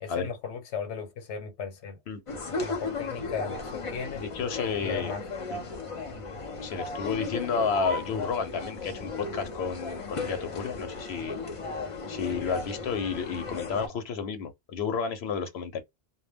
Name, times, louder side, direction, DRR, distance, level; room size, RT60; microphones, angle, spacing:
voice 1, 0.0-2.0 2.6-4.2 4.8-5.2, left 6 dB, 90° left, 1.0 m, -36 dB
sound 1, 2.3-13.9, left 3 dB, 40° left, 0.5 m, -35 dB
voice 2, 4.1-5.1 5.5-5.6 6.6-11.4 12.1-15.8, left 5 dB, 70° left, 0.8 m, -31 dB
2.2 x 2.1 x 3.3 m
omnidirectional pair, 1.1 m